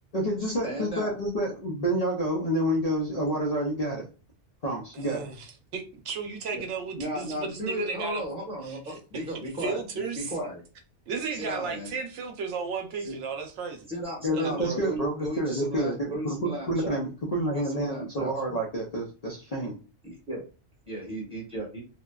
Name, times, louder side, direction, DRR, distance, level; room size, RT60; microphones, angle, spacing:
voice 1, 0.1-4.1 4.6-5.2 14.2-19.8, right 1 dB, 50° left, 0.5 m, -28 dB
voice 2, 0.6-1.2 6.5-6.6 7.0-9.8 10.2-10.6 11.3-11.9 13.0-13.1 13.9-17.0 17.5-18.6 20.0-20.4 20.9-21.8, right 1 dB, 5° right, 1.0 m, -35 dB
voice 3, 4.9-8.2 8.7-9.0 9.6-10.3 11.1-13.9 14.3-14.7, right 5 dB, 85° right, 1.0 m, -34 dB
2.7 x 2.1 x 2.3 m
omnidirectional pair, 1.2 m